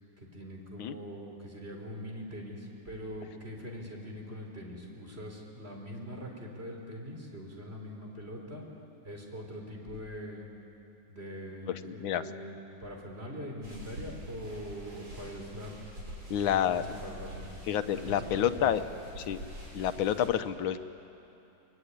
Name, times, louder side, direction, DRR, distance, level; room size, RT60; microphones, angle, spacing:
voice 1, 0.2-8.6 9.0-10.4 11.1-15.7 16.4-17.5 18.0-18.7 20.0-20.1, equal, 30° right, 0 dB, 4.3 m, -42 dB
voice 2, 11.7-12.2 16.3-16.8 17.7-18.8 19.2-19.4 19.7-20.8, left 10 dB, 90° left, 10 dB, 1.6 m, -29 dB
sound 1, 13.6-20.3, equal, 85° right, 6.5 m, -46 dB
24.5 x 22.0 x 9.8 m, 2.9 s
omnidirectional pair, 2.1 m